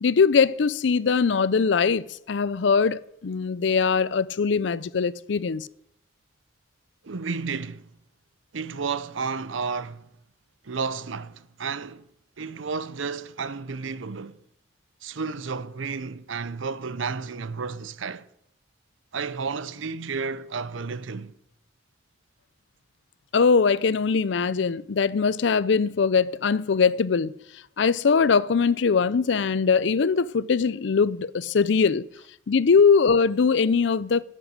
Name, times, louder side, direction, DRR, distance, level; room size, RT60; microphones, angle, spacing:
voice 1, 0.0-5.7 23.3-27.3 27.8-32.0 32.5-34.2, left 5 dB, 65° left, 0.5 m, -21 dB
voice 2, 7.0-7.9 8.5-10.1 10.6-12.0 12.4-14.4 15.0-18.3 19.1-21.3, right 5 dB, 80° right, 0.7 m, -32 dB
11.0 x 7.6 x 9.9 m
head